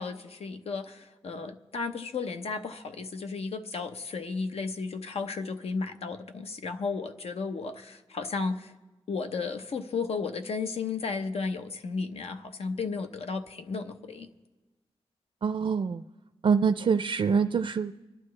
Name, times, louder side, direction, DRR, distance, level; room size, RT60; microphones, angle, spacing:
voice 1, 0.0-8.7 9.1-14.3, left 4 dB, 75° left, 7 dB, 0.9 m, -34 dB
voice 2, 15.4-16.0 16.4-17.9, right 6 dB, 55° right, 10 dB, 0.4 m, -25 dB
26.0 x 11.5 x 3.3 m, 1.1 s
wide cardioid pair, 135°, 10 cm